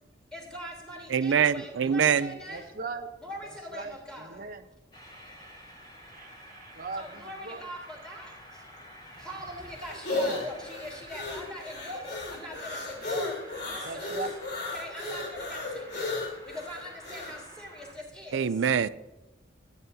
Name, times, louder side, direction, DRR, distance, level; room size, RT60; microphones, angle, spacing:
voice 1, 0.3-2.6 3.2-4.4 7.0-8.6 9.2-14.1 14.7-18.6, equal, 5° left, 3.4 m, -42 dB
voice 2, 1.1-2.3 18.3-18.9, right 7 dB, 75° right, 0.4 m, -24 dB
voice 3, 2.5-3.1 3.4-4.7 6.1-7.7 13.8-14.3, right 3 dB, 50° right, 0.8 m, -39 dB
Train, 4.9-17.9, equal, 25° left, 3.1 m, -50 dB
sound 1, 9.1-17.4, left 2 dB, 60° left, 3.6 m, -35 dB
14.0 x 9.4 x 2.7 m
head